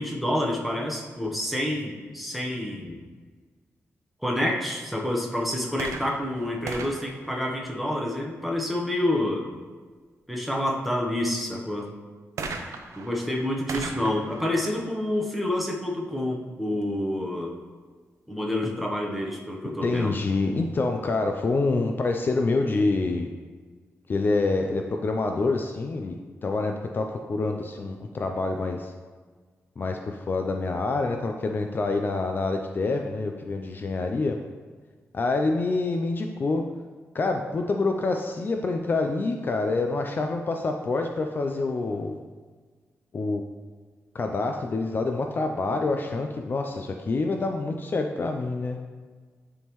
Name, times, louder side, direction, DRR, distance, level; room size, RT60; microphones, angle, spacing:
voice 1, 0.0-3.0 4.2-9.4 10.3-11.9 13.0-17.6 18.3-20.2, left 1 dB, ahead, -1 dB, 1.0 m, -28 dB
sound 1, 5.7-8.3 12.4-16.0 16.8-16.9, right 4 dB, 80° right, 0.6 m, -39 dB
voice 2, 19.8-23.3 24.1-28.9 29.8-34.4 35.1-36.6 37.1-42.2 43.1-43.4 44.1-48.8, left 3 dB, 40° left, 4 dB, 0.4 m, -26 dB
9.6 x 3.6 x 3.0 m, 1.5 s
cardioid pair, 100°, 5 cm